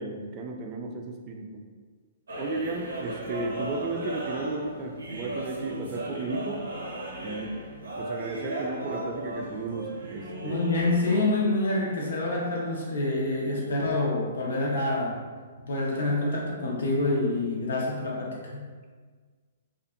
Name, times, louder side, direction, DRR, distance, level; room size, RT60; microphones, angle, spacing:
voice 1, 0.0-1.6 2.4-6.6 7.2-7.6 8.0-10.6, right 3 dB, 35° right, 2 dB, 0.3 m, -34 dB
sound 1, 2.3-11.3, right 1 dB, 80° right, 0.6 m, -36 dB
voice 2, 10.4-15.2 15.7-18.6, left 2 dB, 70° left, -3 dB, 0.7 m, -27 dB
2.5 x 2.4 x 2.4 m, 1.5 s
hypercardioid pair, 125°, 0 cm